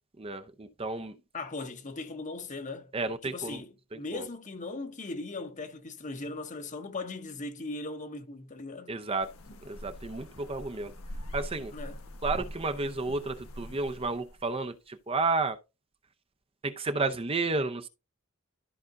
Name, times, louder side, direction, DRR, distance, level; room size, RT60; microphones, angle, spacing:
voice 1, 0.2-1.1 2.9-3.6 3.9-4.2 8.9-9.3 9.6-10.9 11.3-11.7 12.2-15.6 16.6-17.9, right 3 dB, 25° right, 0.6 m, -32 dB
voice 2, 1.3-2.9 3.2-9.0 11.7-12.0, left 3 dB, 35° left, 1.0 m, -39 dB
sound 1, 9.2-14.5, equal, 70° left, 1.2 m, -42 dB
13.0 x 4.9 x 2.5 m
head